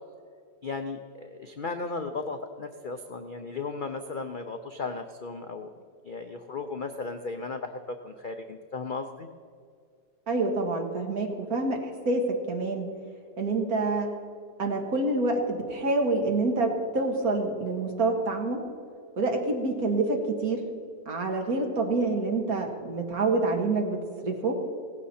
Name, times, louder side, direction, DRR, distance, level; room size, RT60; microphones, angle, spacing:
voice 1, 0.6-5.7 6.0-9.3, left 4 dB, 70° left, 6 dB, 0.4 m, -35 dB
voice 2, 10.3-12.9 13.4-14.1 14.6-18.6 19.2-20.7 21.1-24.6, right 3 dB, 60° right, 2 dB, 2.1 m, -27 dB
17.5 x 15.0 x 4.3 m, 2.2 s
omnidirectional pair, 1.8 m